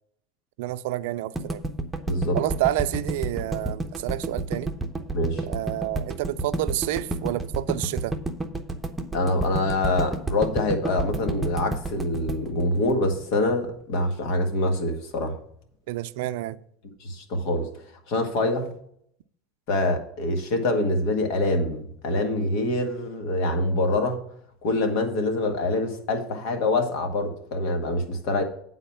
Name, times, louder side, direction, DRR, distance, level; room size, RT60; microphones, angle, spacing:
voice 1, 0.6-1.6 2.3-4.7 5.4-8.2 15.9-16.6, right 15 dB, 80° right, 0.4 m, -29 dB
sound 1, 1.4-13.5, right 2 dB, 10° right, 0.8 m, -30 dB
voice 2, 2.1-2.4 5.1-5.4 9.1-15.4 17.0-17.7 18.1-18.7 19.7-24.2 24.6-28.4, left 2 dB, 65° left, 1.7 m, -25 dB
9.1 x 4.1 x 7.1 m
supercardioid pair, 130°, 0 cm